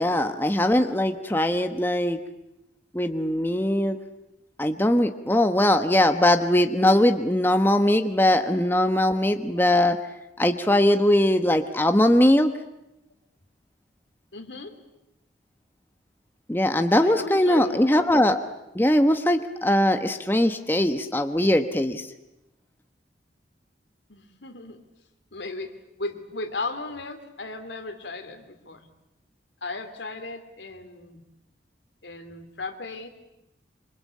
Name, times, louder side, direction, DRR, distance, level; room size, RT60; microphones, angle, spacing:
voice 1, 0.0-2.2 2.9-4.0 4.6-10.0 10.4-12.5 16.5-18.4 18.7-22.1, left 1 dB, 10° left, 7 dB, 1.1 m, -21 dB
voice 2, 14.3-14.8 17.0-17.8 24.1-24.8 25.3-25.7 26.0-28.9 29.6-31.2 32.0-33.1, left 3 dB, 75° left, 8 dB, 3.0 m, -36 dB
26.5 x 25.5 x 8.5 m, 0.90 s
head